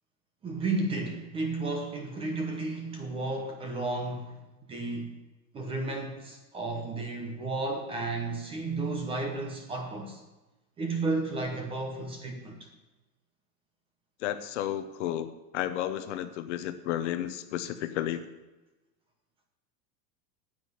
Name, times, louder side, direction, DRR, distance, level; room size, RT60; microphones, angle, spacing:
voice 1, 0.4-4.4 4.7-5.1 5.5-10.2 10.8-12.7, right 3 dB, 10° right, 4 dB, 0.8 m, -33 dB
voice 2, 14.2-15.3 15.5-18.3, left 12 dB, 45° left, 11 dB, 0.8 m, -32 dB
9.6 x 8.5 x 9.4 m, 1.1 s
supercardioid pair, 175°, 50 cm